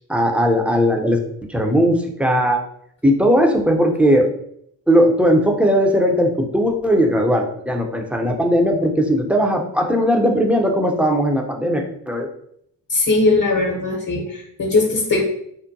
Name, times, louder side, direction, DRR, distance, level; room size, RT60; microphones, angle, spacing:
voice 1, 0.1-1.2 1.5-2.6 3.0-4.3 4.9-12.3, equal, 5° right, 2 dB, 0.7 m, -18 dB
voice 2, 12.9-15.3, left 3 dB, 40° left, -1 dB, 1.1 m, -19 dB
4.7 x 2.1 x 2.7 m, 0.69 s
hypercardioid pair, 50°, 47 cm